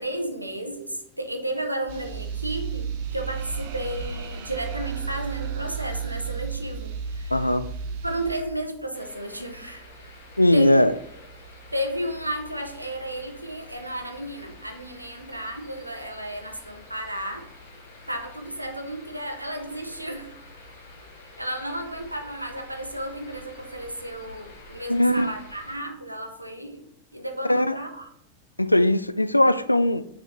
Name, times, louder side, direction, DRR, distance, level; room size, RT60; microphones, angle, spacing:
voice 1, 0.0-7.5 8.0-10.1 10.5-10.8 11.7-17.5 18.1-20.3 21.4-28.1, right 1 dB, 85° right, 5 dB, 0.7 m, -33 dB
sound 1, 1.9-8.4, right 6 dB, 45° right, 1.0 m, -33 dB
voice 2, 7.3-7.7 10.4-10.9 24.9-25.3 27.5-27.8 28.6-30.0, left 1 dB, 85° left, 14 dB, 0.3 m, -19 dB
sound 2, 8.9-25.8, left 1 dB, 60° left, 2.2 m, -47 dB
5.9 x 4.1 x 5.5 m, 0.75 s
figure-of-eight pair, 90°, 0 cm